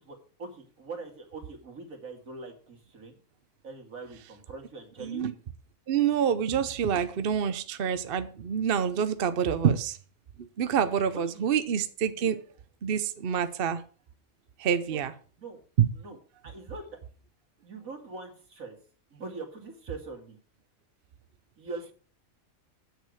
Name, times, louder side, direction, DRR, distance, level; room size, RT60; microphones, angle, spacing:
voice 1, 0.0-3.2 3.6-5.3 11.3-11.5 12.0-12.3 14.9-15.1 15.4-15.6 15.9-16.2 16.4-17.0 17.6-18.8 19.1-20.4 21.6-21.9, right 3 dB, 75° right, 2.7 m, -42 dB
voice 2, 5.0-5.3 5.9-10.0 10.4-12.4 12.8-13.8 14.6-15.1 15.8-15.9, right 8 dB, 50° right, 0.8 m, -27 dB
9.2 x 6.6 x 6.4 m
omnidirectional pair, 1.5 m